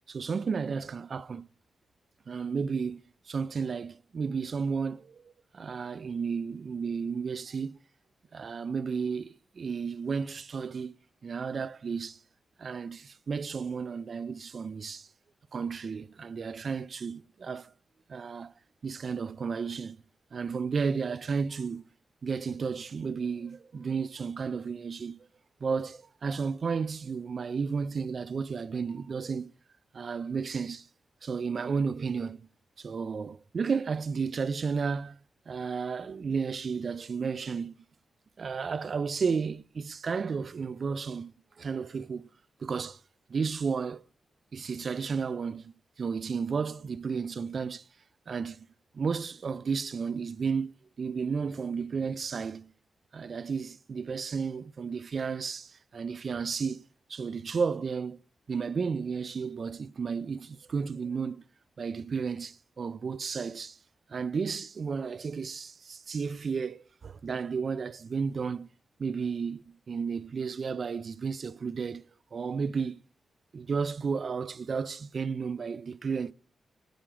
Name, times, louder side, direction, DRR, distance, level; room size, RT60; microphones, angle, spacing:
voice 1, 0.1-1.5 2.3-3.0 3.3-7.8 8.3-11.0 11.2-12.2 12.6-15.1 15.5-17.7 18.1-18.5 18.8-20.0 20.3-21.8 22.2-25.3 25.6-29.5 29.9-30.9 31.2-32.4 32.8-35.2 35.5-37.7 38.4-42.3 42.6-43.0 43.3-44.0 44.5-47.8 48.3-48.7 48.9-50.7 51.0-52.7 53.1-56.8 57.1-58.2 58.5-61.4 61.8-63.8 64.1-68.7 69.0-73.0 73.5-76.3, right 5 dB, 45° right, 0.3 m, -33 dB
11.5 x 5.0 x 5.9 m
wide cardioid pair, 140°, 0 cm